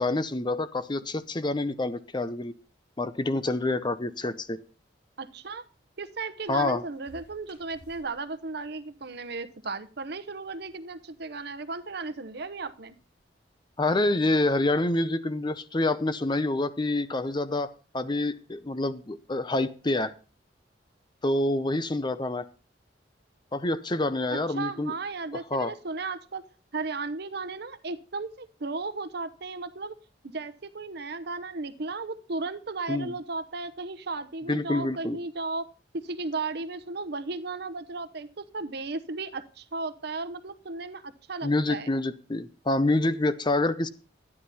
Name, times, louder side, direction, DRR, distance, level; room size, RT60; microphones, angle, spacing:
voice 1, 0.0-2.5 3.0-4.6 6.5-6.8 13.8-20.1 21.2-22.5 23.5-24.9 25.3-25.8 32.9-33.2 34.5-35.2 41.4-43.9, left 2 dB, 25° left, 13 dB, 0.7 m, -27 dB
voice 2, 5.2-5.6 6.0-12.9 24.6-26.4 26.7-30.0 30.3-35.6 36.1-38.3 38.5-41.9, right 3 dB, 60° right, 12 dB, 0.9 m, -35 dB
sound 1, 6.4-13.2, left 1 dB, 85° left, 5.4 m, -61 dB
13.0 x 9.8 x 4.2 m, 0.36 s
head